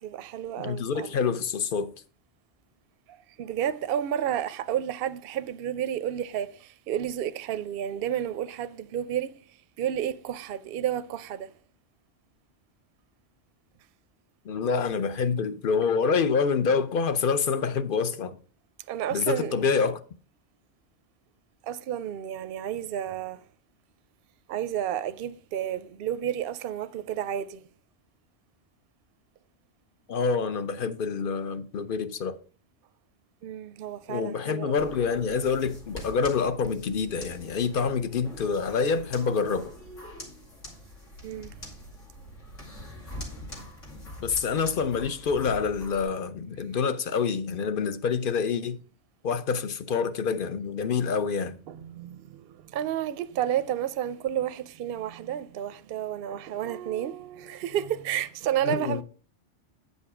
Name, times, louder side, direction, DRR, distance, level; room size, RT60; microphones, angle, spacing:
voice 1, 0.0-1.2 3.1-9.3 9.8-11.5 18.9-19.6 21.6-23.4 24.5-27.7 33.4-34.8 41.2-41.5 51.7-59.0, right 10 dB, 60° right, 0.7 m, -31 dB
voice 2, 0.6-1.9 14.4-18.3 19.1-20.0 30.1-32.4 34.1-39.7 44.2-48.8 49.2-51.5 58.6-59.0, left 5 dB, 50° left, 0.8 m, -27 dB
sound 1, 34.8-46.0, left 1 dB, 80° left, 3.0 m, -44 dB
9.3 x 5.4 x 4.8 m
omnidirectional pair, 1.2 m